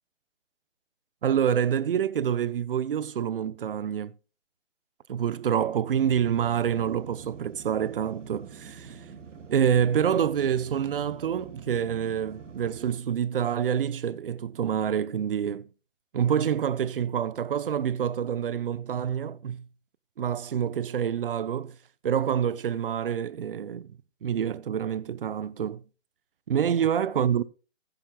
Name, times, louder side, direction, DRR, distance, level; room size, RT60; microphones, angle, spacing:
voice 1, 1.2-4.1 5.1-9.0 9.5-15.7 16.1-19.7 20.2-21.8 22.0-23.9 24.2-25.8 26.5-27.4, right 8 dB, 45° right, 0.8 m, -27 dB
sound 1, 5.9-13.0, right 6 dB, 70° right, 2.1 m, -46 dB
15.5 x 10.5 x 2.3 m
hypercardioid pair, 155°, 38 cm